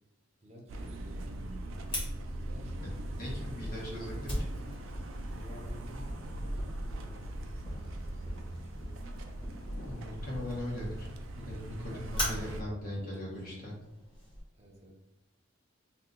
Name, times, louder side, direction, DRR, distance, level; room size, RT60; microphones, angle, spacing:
voice 1, 0.4-1.7 2.5-4.1 5.3-9.3 11.8-13.7 14.5-15.0, equal, 35° right, -1 dB, 0.6 m, -53 dB
sound 1, 0.7-12.6, right 1 dB, 80° right, 0.4 m, -41 dB
Fire, 1.9-14.4, equal, 25° left, 1.1 m, -42 dB
sound 2, 2.9-11.2, equal, 80° left, 0.5 m, -45 dB
voice 2, 3.2-4.3 9.8-11.1 11.3-13.7, left 1 dB, 45° left, -4 dB, 1.1 m, -39 dB
2.7 x 2.3 x 3.7 m, 0.98 s
head